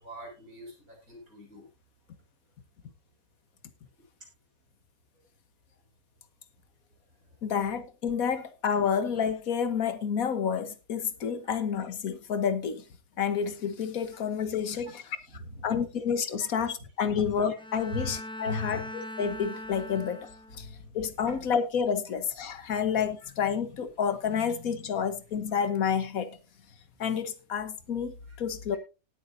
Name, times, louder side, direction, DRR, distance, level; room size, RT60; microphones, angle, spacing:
voice 1, 0.0-1.7 15.3-15.9 17.1-17.3 17.9-18.0 18.4-18.9 20.6-20.7, left 1 dB, 80° right, 6.9 m, -39 dB
voice 2, 7.4-12.8 13.2-15.0 15.6-20.7 20.9-26.4 27.0-28.8, left 7 dB, 80° left, 1.7 m, -29 dB
Bowed string instrument, 17.6-20.8, left 1 dB, 5° left, 0.5 m, -41 dB
18.5 x 9.3 x 2.7 m
omnidirectional pair, 1.5 m